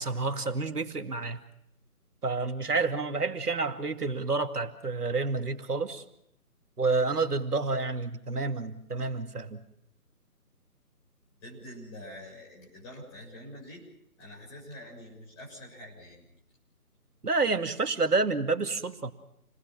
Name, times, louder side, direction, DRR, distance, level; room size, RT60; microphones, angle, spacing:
voice 1, 0.0-1.4 2.2-6.0 6.8-9.6 17.2-19.1, right 3 dB, 75° right, 7 dB, 2.4 m, -29 dB
voice 2, 11.4-13.8 14.2-16.3, left 1 dB, 15° left, -3 dB, 7.0 m, -46 dB
29.0 x 19.5 x 6.0 m, 0.76 s
figure-of-eight pair, 160°, 46 cm